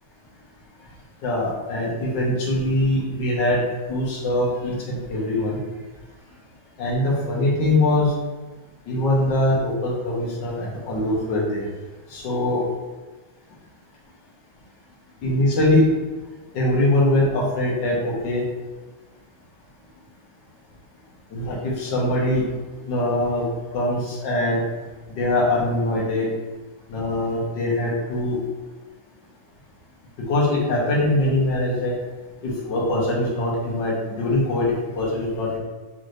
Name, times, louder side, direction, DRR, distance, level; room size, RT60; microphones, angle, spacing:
voice 1, 1.2-3.6 3.9-5.6 6.8-8.1 8.9-11.7 12.1-12.6 15.2-15.9 16.5-18.4 21.3-22.5 22.9-23.5 23.7-24.6 25.2-26.3 26.9-28.4 30.3-31.9 32.4-34.7 34.9-35.6, left 1 dB, 75° left, -4 dB, 1.8 m, -22 dB
6.4 x 3.1 x 2.6 m, 1.2 s
omnidirectional pair, 2.0 m